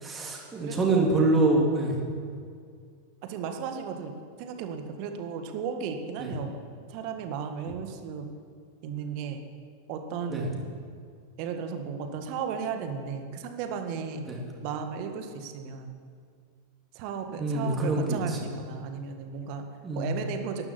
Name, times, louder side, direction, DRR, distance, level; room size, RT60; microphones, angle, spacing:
voice 1, 0.0-2.0 6.2-6.3 10.3-10.4 14.3-14.4 17.4-18.2 19.8-20.1, right 2 dB, 20° right, -1 dB, 3.4 m, -25 dB
voice 2, 0.6-1.2 1.9-2.4 3.2-4.1 4.4-6.6 6.9-8.3 8.8-9.4 9.9-10.6 11.4-14.3 14.6-16.0 16.9-19.7 19.9-20.7, right 6 dB, 45° right, 6 dB, 1.7 m, -35 dB
13.0 x 11.5 x 8.6 m, 2.1 s
figure-of-eight pair, 90°, 0 cm